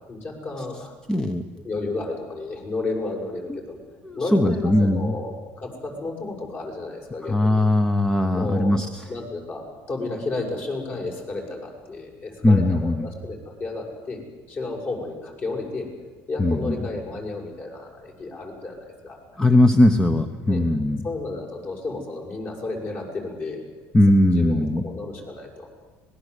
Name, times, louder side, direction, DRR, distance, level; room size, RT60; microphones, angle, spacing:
voice 1, 0.1-0.9 1.6-3.8 4.2-7.7 8.3-8.7 9.1-14.2 14.5-15.9 16.3-19.4 20.5-20.7 21.0-23.6 24.3-25.7, left 3 dB, 40° left, 1 dB, 7.0 m, -32 dB
voice 2, 1.1-1.4 3.5-3.6 4.0-5.1 7.3-9.0 12.4-13.1 16.4-16.8 19.4-21.0 23.9-24.8, left 1 dB, 10° left, 7 dB, 1.2 m, -19 dB
25.5 x 20.5 x 8.4 m, 1.3 s
cardioid pair, 135°, 5 cm